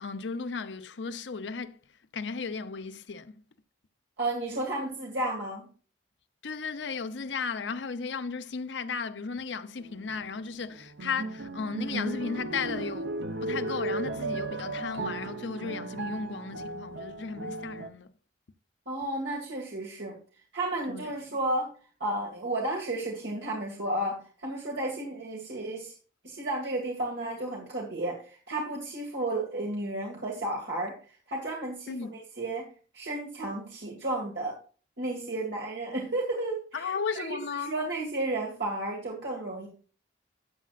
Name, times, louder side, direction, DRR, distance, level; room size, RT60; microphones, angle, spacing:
voice 1, 0.0-1.7 2.1-3.3 6.4-13.1 13.4-18.1 20.9-21.0 31.9-32.1 36.7-37.7, left 5 dB, 80° left, 0.6 m, -35 dB
voice 2, 4.2-5.7 18.9-20.2 20.5-21.7 22.0-25.9 26.2-30.9 31.3-32.7 32.9-34.6 35.0-39.7, right 1 dB, 70° right, 2.1 m, -33 dB
sound 1, 9.8-10.2 10.7-17.9, right 3 dB, 90° right, 0.8 m, -35 dB
13.0 x 8.4 x 2.5 m
head